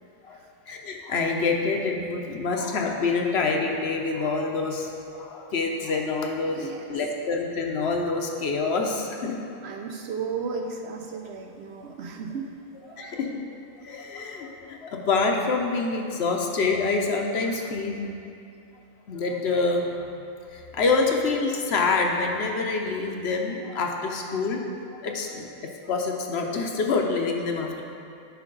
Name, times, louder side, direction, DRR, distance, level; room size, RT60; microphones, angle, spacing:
voice 1, 0.7-9.4 13.0-13.3 13.8-18.1 19.1-20.1 20.5-24.6 24.9-27.8, left 4 dB, 60° left, 2 dB, 0.9 m, -26 dB
voice 2, 6.5-6.8 9.6-12.5 12.9-13.2, right 5 dB, 65° right, 2 dB, 0.8 m, -34 dB
10.5 x 5.1 x 3.8 m, 2.5 s
omnidirectional pair, 1.3 m